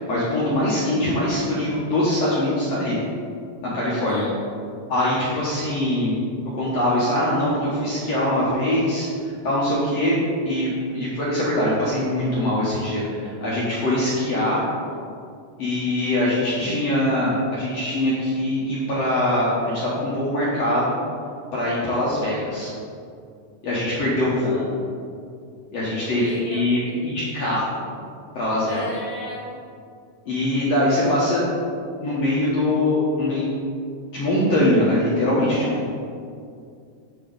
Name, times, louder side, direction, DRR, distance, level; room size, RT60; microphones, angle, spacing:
voice 1, 0.1-3.0 3.6-4.2 4.9-6.1 6.6-10.2 10.5-14.6 15.6-21.0 21.5-22.7 23.6-24.6 25.7-27.8 28.4-28.8 30.3-31.5 32.0-33.6 34.1-36.0, left 1 dB, 65° left, -8 dB, 1.8 m, -22 dB
voice 2, 3.9-4.3 16.5-16.6 24.4-24.7 26.1-27.2 28.7-29.5 35.5-35.8, left 1 dB, 25° right, -10 dB, 1.2 m, -35 dB
9.8 x 4.8 x 3.9 m, 2.3 s
omnidirectional pair, 4.2 m